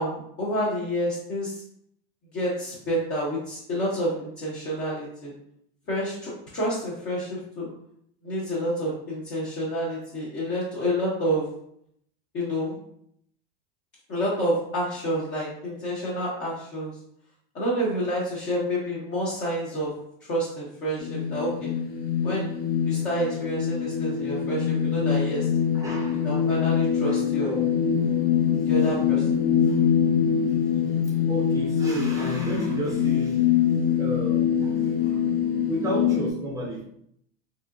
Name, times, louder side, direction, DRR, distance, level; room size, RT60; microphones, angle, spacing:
voice 1, 0.0-1.6 2.3-5.3 5.9-7.7 8.2-11.5 12.3-12.8 14.1-16.9 17.5-19.9 20.2-21.7 22.2-22.4 22.8-25.5 26.2-27.6 28.7-29.3, equal, 40° left, -6 dB, 0.8 m, -29 dB
sound 1, 21.0-36.3, left 8 dB, 75° left, 0.7 m, -24 dB
voice 2, 25.7-26.3 27.0-27.2 29.6-29.9 31.3-33.5 34.0-35.2 35.6-36.8, right 1 dB, 10° right, -4 dB, 0.4 m, -33 dB
3.3 x 2.7 x 2.4 m, 0.70 s
supercardioid pair, 150°, 29 cm